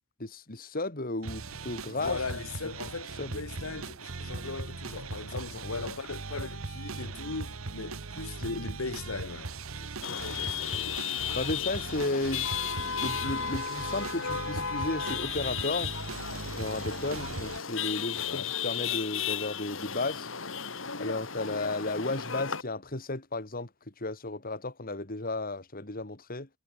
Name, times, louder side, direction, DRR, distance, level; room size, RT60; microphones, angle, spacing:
voice 1, 0.2-2.2 3.2-3.4 4.3-4.4 11.3-15.9 16.6-20.3 21.0-23.7 24.0-26.5, left 2 dB, 45° left, 2.7 m, -34 dB
sound 1, 1.2-17.6, right 3 dB, 80° right, 1.3 m, -39 dB
voice 2, 1.9-10.9 18.2-18.5, left 3 dB, 85° left, 1.4 m, -39 dB
Chatter / Vehicle horn car horn honking / Traffic noise roadway noise, 10.0-22.6, left 7 dB, 65° left, 4.0 m, -34 dB
head